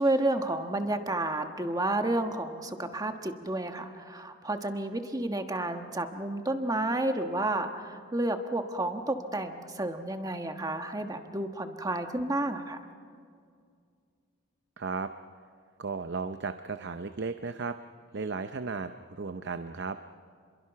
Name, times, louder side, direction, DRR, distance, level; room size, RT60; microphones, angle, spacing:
voice 1, 0.0-12.8, right 1 dB, 20° right, 6 dB, 1.3 m, -31 dB
voice 2, 14.8-15.1 15.8-17.8 18.1-20.0, right 4 dB, 60° right, 9 dB, 0.6 m, -35 dB
29.5 x 22.5 x 5.8 m, 2.2 s
head